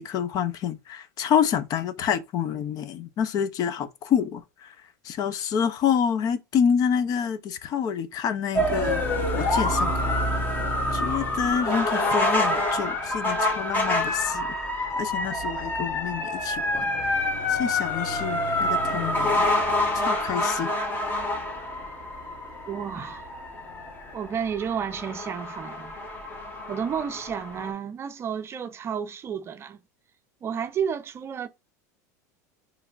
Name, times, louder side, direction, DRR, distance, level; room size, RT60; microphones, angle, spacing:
voice 1, 0.0-4.7 5.0-9.0 9.3-10.1 10.9-17.1 17.5-19.4 19.9-20.7, left 8 dB, 45° left, 0.7 m, -28 dB
sound 1, 8.5-27.7, left 1 dB, 20° left, 1.5 m, -27 dB
voice 2, 22.7-23.2 24.1-25.9 26.7-29.8 30.4-31.5, right 7 dB, 30° right, 0.6 m, -31 dB
4.8 x 3.3 x 2.4 m
supercardioid pair, 120°, 9 cm